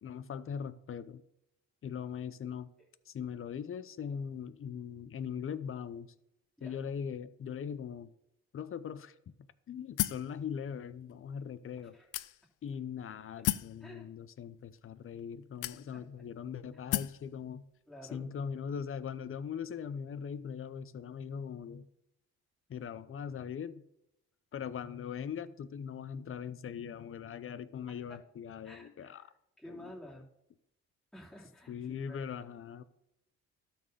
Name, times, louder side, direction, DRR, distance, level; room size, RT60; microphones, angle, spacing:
voice 1, 0.0-1.2 1.8-2.7 3.1-6.1 6.6-8.1 8.5-9.1 9.7-12.0 12.6-17.7 18.1-21.9 22.7-23.8 24.5-29.2 29.7-29.9 31.7-32.8, left 7 dB, 45° left, 14 dB, 0.7 m, -40 dB
sound 1, 10.0-10.3 11.1-11.2 12.1-12.7 13.4-13.8 14.7-14.8 15.6-16.2 16.9-17.2, left 16 dB, 85° left, 0.5 m, -33 dB
voice 2, 13.8-14.1 15.9-16.0 17.9-18.3 28.1-28.2 28.6-29.3 29.6-30.3 31.1-32.2, equal, ahead, -5 dB, 3.0 m, -51 dB
12.5 x 4.4 x 6.8 m, 0.82 s
cardioid pair, 90°, 30 cm